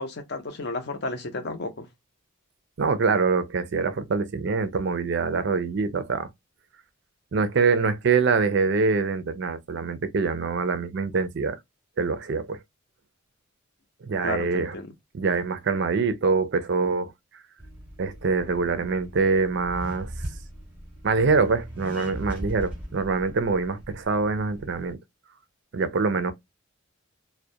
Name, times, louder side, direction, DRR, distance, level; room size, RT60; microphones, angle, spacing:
voice 1, 0.0-1.9 14.2-14.9, left 2 dB, 50° left, 0.6 m, -32 dB
voice 2, 2.8-6.3 7.3-11.6 12.0-12.6 14.0-14.7 15.1-17.1 18.0-20.1 21.0-25.0 25.7-26.3, right 4 dB, 55° right, 0.4 m, -24 dB
Accelerating revving vroom, 17.6-24.9, equal, 5° right, 0.8 m, -39 dB
2.3 x 2.1 x 2.7 m
head